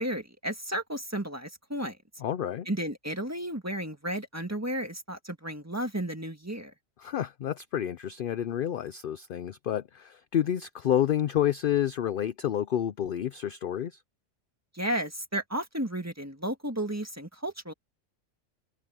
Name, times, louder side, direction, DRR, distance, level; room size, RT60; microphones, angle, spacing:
voice 1, 0.0-2.0 2.7-6.7 14.7-17.7, right 1 dB, 10° right, 1.7 m, -33 dB
voice 2, 2.2-2.7 7.0-14.0, left 10 dB, 60° left, 0.6 m, -29 dB
open air
omnidirectional pair, 1.3 m